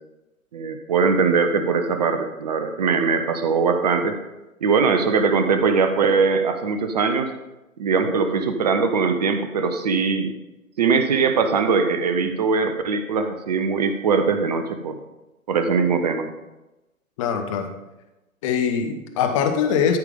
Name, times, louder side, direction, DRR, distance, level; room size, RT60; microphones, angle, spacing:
voice 1, 0.5-4.2 4.6-7.3 7.8-10.3 10.8-14.9 15.5-16.3, right 5 dB, 30° right, 7 dB, 0.6 m, -21 dB
voice 2, 17.2-17.8 18.4-20.0, left 7 dB, 25° left, 6 dB, 0.8 m, -22 dB
12.5 x 5.0 x 5.1 m, 1.0 s
figure-of-eight pair, 130°, 42 cm